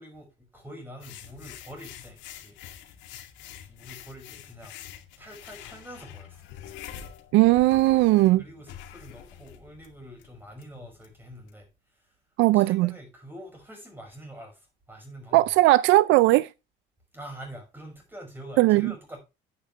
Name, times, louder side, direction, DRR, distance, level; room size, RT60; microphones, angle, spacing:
voice 1, 0.0-2.6 3.7-4.8 5.2-6.5 8.3-12.2 12.5-15.5 17.1-19.2, equal, 10° right, 5.6 m, -45 dB
sound 1, 1.0-11.5, left 10 dB, 85° left, 2.2 m, -46 dB
voice 2, 7.3-8.4 12.4-12.9 15.3-16.5 18.6-18.9, right 18 dB, 80° right, 0.4 m, -18 dB
10.0 x 8.9 x 3.3 m
cardioid pair, 140°, 19 cm